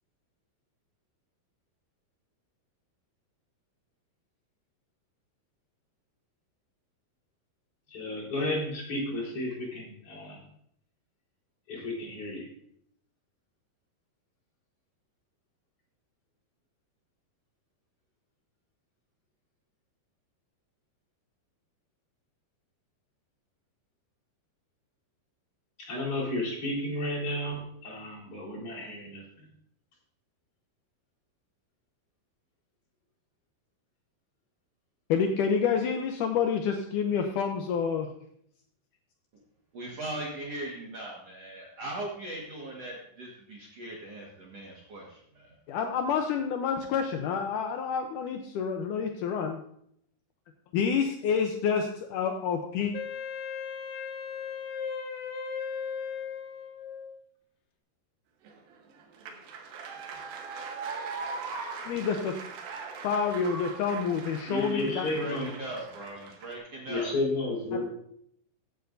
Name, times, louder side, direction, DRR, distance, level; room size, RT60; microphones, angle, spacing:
voice 1, 7.9-10.4 11.7-12.5 25.9-29.2 64.5-65.5 66.9-67.8, left 1 dB, 35° left, -5 dB, 4.9 m, -32 dB
voice 2, 35.1-38.1 45.7-49.6 50.7-52.9 61.9-62.4 63.0-65.1 67.7-67.8, left 6 dB, 85° left, 4 dB, 1.8 m, -28 dB
voice 3, 39.7-45.6 64.9-67.1, right 1 dB, 50° right, -3 dB, 2.1 m, -39 dB
Wind instrument woodwind instrument, 52.9-57.2, left 6 dB, 70° left, 2.5 m, -37 dB
sound 1, 58.5-66.6, right 4 dB, 70° right, 2.7 m, -40 dB
15.5 x 9.2 x 2.6 m, 0.70 s
omnidirectional pair, 4.6 m